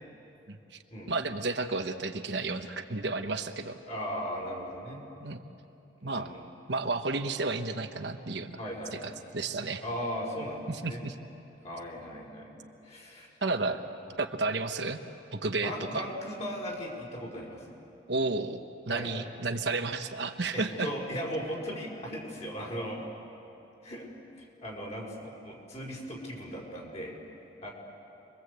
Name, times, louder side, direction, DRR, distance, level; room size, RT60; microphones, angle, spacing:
voice 1, 1.1-3.8 5.2-5.4 6.0-6.3 6.7-8.6 9.0-9.8 10.7-11.1 13.4-13.8 14.2-15.0 15.3-16.0 18.1-18.6 18.9-20.9, right 3 dB, 65° right, 6 dB, 1.2 m, -32 dB
voice 2, 3.9-5.0 6.0-6.4 8.6-9.0 9.8-11.0 11.6-13.3 13.6-13.8 15.6-17.6 18.9-19.1 20.5-23.0 23.8-24.1 24.4-27.2 27.6-27.7, equal, 35° left, -1 dB, 4.9 m, -37 dB
29.0 x 22.0 x 8.2 m, 2.8 s
head